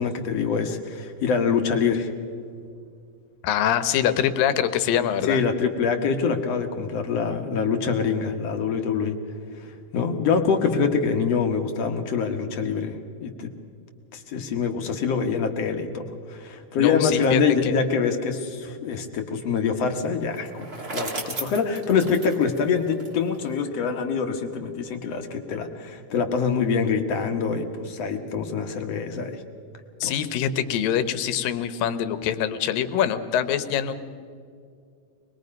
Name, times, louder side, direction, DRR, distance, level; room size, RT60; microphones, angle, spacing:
voice 1, 0.0-2.1 5.2-9.2 9.6-13.5 14.1-29.4 30.0-30.1, left 5 dB, 55° left, 5 dB, 2.1 m, -25 dB
voice 2, 3.4-5.4 16.8-17.7 30.0-33.9, left 9 dB, 85° left, 12 dB, 2.7 m, -24 dB
Bicycle, 20.3-23.5, right 2 dB, 30° right, 1.1 m, -35 dB
25.0 x 21.0 x 5.3 m, 2.3 s
omnidirectional pair, 3.9 m